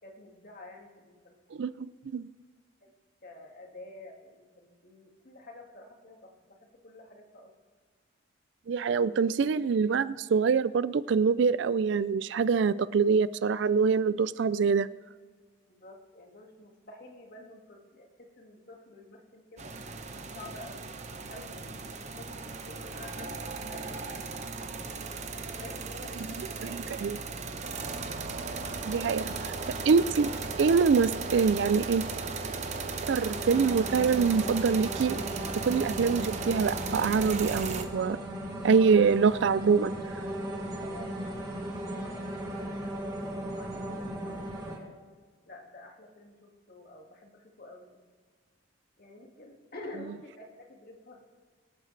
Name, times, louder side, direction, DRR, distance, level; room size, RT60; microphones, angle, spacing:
voice 1, 0.0-1.3 2.8-2.9 3.2-7.5 15.7-19.8 20.2-21.0 21.3-24.4 25.5-27.0 29.0-29.4 40.6-45.0 45.4-48.0 49.0-51.3, left 2 dB, 45° left, 1 dB, 2.0 m, -49 dB
voice 2, 1.5-1.9 2.1-2.3 8.7-14.9 26.4-27.2 28.9-29.2 29.8-30.3 30.6-32.0 33.1-35.2 35.6-38.2 38.6-39.9, right 5 dB, 60° right, 17 dB, 0.3 m, -25 dB
sound 1, 19.6-37.8, right 4 dB, 35° right, 0.9 m, -36 dB
sound 2, 33.2-44.8, right 1 dB, 15° right, 2.6 m, -37 dB
25.0 x 8.7 x 3.3 m, 1.6 s
head